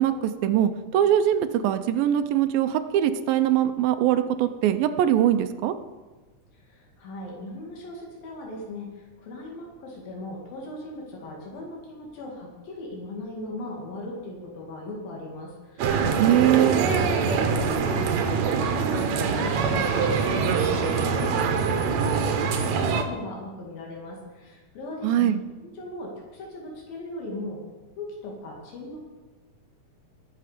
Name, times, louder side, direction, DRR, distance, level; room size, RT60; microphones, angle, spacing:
voice 1, 0.0-5.7 16.2-16.8 25.0-25.4, right 11 dB, 85° right, 9 dB, 2.4 m, -22 dB
voice 2, 6.7-8.9 9.2-16.9 17.2-25.3 25.6-27.6 28.0-29.0, left 2 dB, 85° left, -1 dB, 3.9 m, -38 dB
sound 1, 15.8-23.0, right 5 dB, 65° right, 1.9 m, -24 dB
20.0 x 6.8 x 5.0 m, 1.3 s
omnidirectional pair, 4.0 m